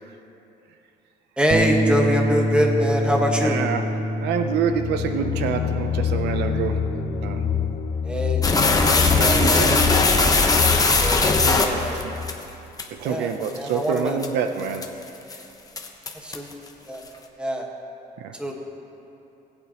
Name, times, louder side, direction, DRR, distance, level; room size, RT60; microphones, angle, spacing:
voice 1, 1.4-3.6 8.0-8.4 8.9-10.4 11.0-12.0 13.0-14.2 16.1-16.5 16.9-17.0 17.4-17.7 18.4-18.6, equal, 5° right, 0 dB, 1.5 m, -25 dB
Bass guitar, 1.5-7.8, right 1 dB, 30° right, 0.7 m, -26 dB
voice 2, 3.4-3.8 4.2-6.8 7.2-7.4 9.1-9.8 10.1-10.3 10.8-10.9 12.0-12.1 12.9-14.9 15.4-15.5 18.2-18.3, right 7 dB, 80° right, 7 dB, 0.7 m, -27 dB
sound 1, 4.7-12.4, left 7 dB, 45° left, 0.9 m, -27 dB
sound 2, 8.4-12.3 12.8-12.9 13.4-13.6 14.0-14.3 14.7-15.0 15.3-15.4 15.8-16.5, left 3 dB, 20° left, 1.0 m, -19 dB
20.5 x 8.8 x 3.0 m, 2.9 s
cardioid pair, 110°, 17 cm